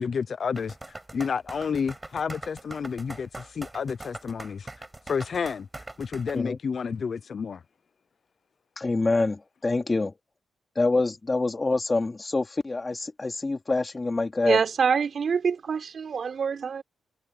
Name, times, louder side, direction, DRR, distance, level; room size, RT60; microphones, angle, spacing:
voice 1, 0.0-4.7 5.1-5.7 6.0-7.6, left 6 dB, 45° left, 0.7 m, -30 dB
sound 1, 0.5-6.4, right 2 dB, 15° right, 6.0 m, -42 dB
voice 2, 8.8-10.1 10.7-14.6, left 3 dB, 20° left, 2.9 m, -26 dB
voice 3, 14.4-16.8, right 6 dB, 50° right, 3.9 m, -25 dB
wide cardioid pair, 130°, 0 cm